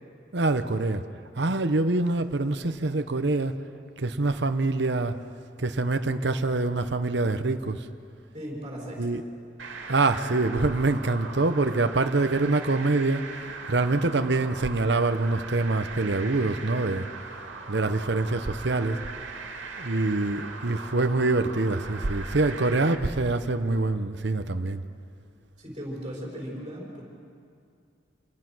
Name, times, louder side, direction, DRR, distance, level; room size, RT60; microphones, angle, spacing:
voice 1, 0.3-1.0 1.4-3.5 4.0-5.1 5.6-7.9 9.0-9.2 9.9-17.0 17.7-19.0 19.8-24.8, right 2 dB, 60° right, 8 dB, 0.9 m, -25 dB
voice 2, 8.3-9.0 25.6-27.0, equal, 25° right, -3 dB, 5.5 m, -37 dB
sound 1, 9.6-23.0, right 4 dB, 80° right, 2.3 m, -40 dB
27.0 x 21.0 x 6.2 m, 2.3 s
head